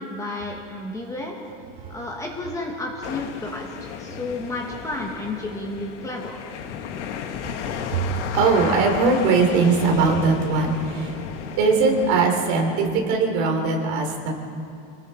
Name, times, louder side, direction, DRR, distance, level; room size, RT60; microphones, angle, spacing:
voice 1, 0.0-1.4 1.9-6.4, left 2 dB, 10° left, 0 dB, 1.5 m, -32 dB
sound 1, 3.0-12.2, left 7 dB, 85° left, 2.1 m, -34 dB
voice 2, 7.6-11.2 11.6-14.3, right 4 dB, 45° right, 1 dB, 3.9 m, -21 dB
29.0 x 20.0 x 4.5 m, 2.7 s
supercardioid pair, 165°, 35 cm